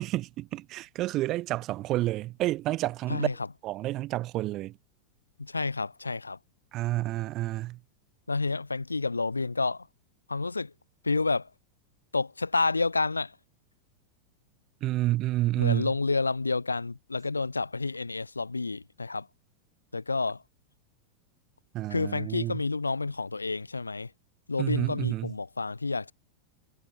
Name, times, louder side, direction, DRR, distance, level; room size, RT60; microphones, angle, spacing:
voice 1, 0.0-3.3 3.6-4.8 6.7-7.8 14.8-15.9 21.7-22.6 24.6-25.3, right 16 dB, 35° right, 2.3 m, -29 dB
voice 2, 5.4-6.4 8.3-9.9 10.3-10.7 11.0-11.5 12.1-13.4 15.6-19.3 19.9-20.4 21.9-24.1 24.5-26.1, left 3 dB, 80° left, 3.7 m, -29 dB
figure-of-eight pair, 90°, 0 cm